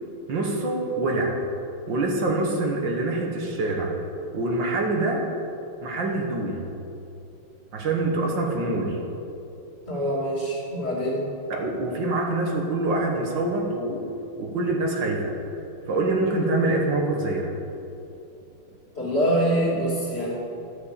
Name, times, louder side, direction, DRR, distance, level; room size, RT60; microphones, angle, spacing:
voice 1, 0.3-1.4 1.9-3.9 4.3-5.2 5.8-6.7 7.7-9.0 11.5-14.1 14.4-15.4 15.9-17.5, right 2 dB, 60° right, 0 dB, 2.0 m, -25 dB
voice 2, 9.9-11.3 19.0-20.3, equal, 30° left, -4 dB, 3.2 m, -24 dB
13.5 x 7.1 x 6.8 m, 2.7 s
omnidirectional pair, 2.3 m